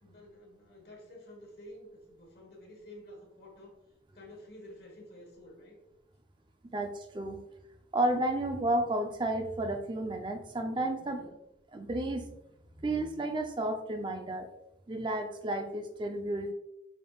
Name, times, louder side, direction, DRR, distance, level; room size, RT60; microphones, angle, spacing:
voice 1, 0.0-3.8 4.1-5.7 11.0-11.4, left 1 dB, 60° left, -1 dB, 1.4 m, -51 dB
voice 2, 6.7-7.4 7.9-11.2 11.7-12.2 12.8-14.5 14.9-16.5, right 1 dB, 25° right, 5 dB, 0.5 m, -32 dB
5.0 x 3.4 x 2.3 m, 0.83 s
head